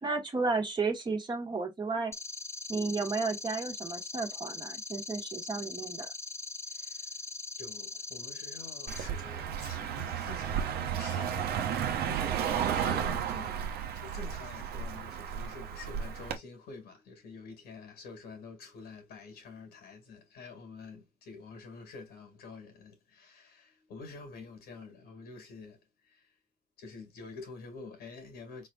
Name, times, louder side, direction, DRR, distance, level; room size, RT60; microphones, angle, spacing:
voice 1, 0.0-2.1 2.7-6.1, right 4 dB, 25° right, 1.5 m, -33 dB
sound 1, 2.1-9.0, left 3 dB, 15° left, 0.4 m, -41 dB
voice 2, 6.6-7.1 7.6-13.7 13.9-26.3 26.8-28.7, left 4 dB, 70° left, 2.0 m, -48 dB
Car passing by, 8.9-16.4, right 8 dB, 65° right, 1.0 m, -33 dB
4.2 x 4.1 x 2.3 m
cardioid pair, 110°, 17 cm